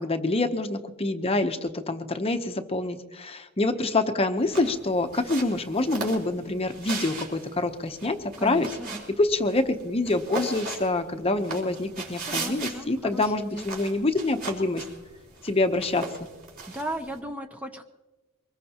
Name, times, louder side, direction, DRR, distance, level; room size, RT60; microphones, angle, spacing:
voice 1, 0.0-8.7 9.2-14.8 15.4-16.0, left 2 dB, 25° left, 8 dB, 0.8 m, -26 dB
sound 1, 4.4-17.2, right 3 dB, 45° right, 3.9 m, -38 dB
voice 2, 8.4-9.0 12.2-13.7 16.7-17.8, right 1 dB, 5° right, 5 dB, 0.7 m, -36 dB
23.5 x 20.5 x 2.9 m, 1.2 s
head